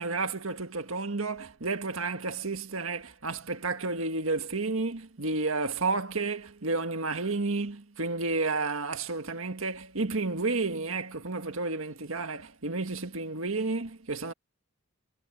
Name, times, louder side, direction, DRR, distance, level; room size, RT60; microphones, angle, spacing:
voice 1, 0.0-14.3, right 3 dB, 80° right, 1.8 m, -31 dB
head